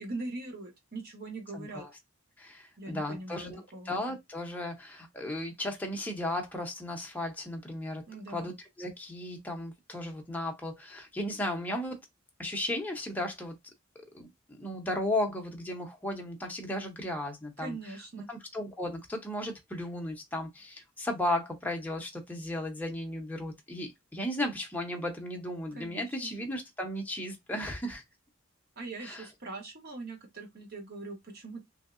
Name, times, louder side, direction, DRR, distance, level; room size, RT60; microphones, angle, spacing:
voice 1, 0.0-1.8 2.8-3.9 8.1-8.5 17.6-18.3 25.8-26.3 28.8-31.7, right 2 dB, 50° right, 1.1 m, -41 dB
voice 2, 1.5-1.9 2.4-8.5 8.8-12.0 12.4-13.6 14.1-17.8 18.3-28.0 29.0-29.3, left 1 dB, 10° left, 0.7 m, -35 dB
3.0 x 2.7 x 2.4 m
head